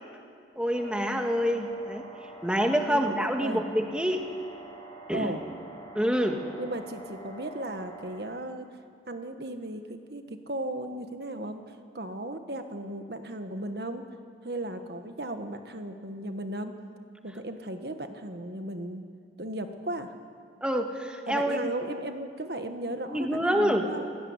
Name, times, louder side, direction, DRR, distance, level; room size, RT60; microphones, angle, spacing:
voice 1, 0.6-2.1 2.4-4.3 5.1-5.3 5.9-6.4 20.6-21.7 23.1-23.9, equal, 5° right, 3 dB, 1.7 m, -27 dB
sound 1, 0.7-8.2, right 2 dB, 25° left, 4.0 m, -46 dB
voice 2, 6.6-8.7 9.1-11.6 11.9-14.0 14.4-16.7 17.2-19.0 19.4-20.1 21.3-24.1, right 1 dB, 65° right, 7 dB, 1.5 m, -36 dB
28.0 x 17.0 x 9.7 m, 2.3 s
head